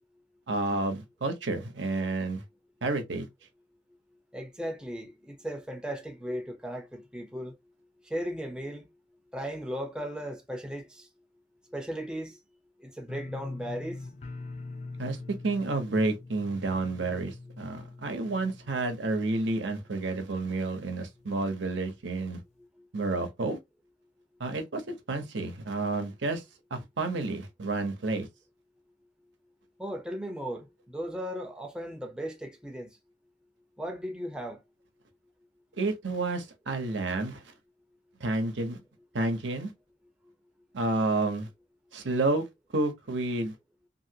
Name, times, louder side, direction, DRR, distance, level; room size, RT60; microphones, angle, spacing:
voice 1, 0.5-2.4 2.8-3.3 15.0-15.2 15.4-22.4 22.9-23.6 24.4-26.4 26.7-28.3 35.8-37.5 38.2-38.8 39.1-39.7 40.7-41.5 41.9-42.4 42.7-43.6, right 2 dB, 85° right, 0.8 m, -30 dB
voice 2, 4.3-7.5 8.0-8.9 9.3-11.1 11.7-12.4 12.8-14.0 29.8-32.9 33.8-34.6, equal, 5° right, 0.6 m, -36 dB
sound 1, 13.1-19.9 20.2-20.8 21.2-21.3, left 3 dB, 40° left, 0.5 m, -43 dB
2.9 x 2.7 x 2.7 m
head